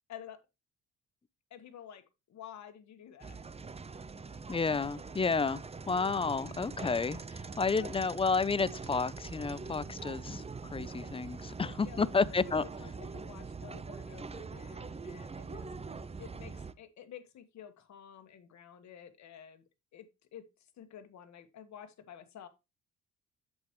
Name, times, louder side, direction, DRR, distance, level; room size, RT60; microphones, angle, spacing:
voice 1, 0.1-0.4 1.5-3.4 7.7-7.9 11.6-15.7 16.2-19.6 19.9-22.5, left 9 dB, 65° left, 1.5 m, -51 dB
sound 1, 3.2-16.7, right 4 dB, 20° right, 0.7 m, -43 dB
voice 2, 4.5-10.4 10.7-12.6, left 4 dB, 20° left, 0.5 m, -31 dB
8.4 x 8.1 x 3.1 m
cardioid pair, 90°, 30 cm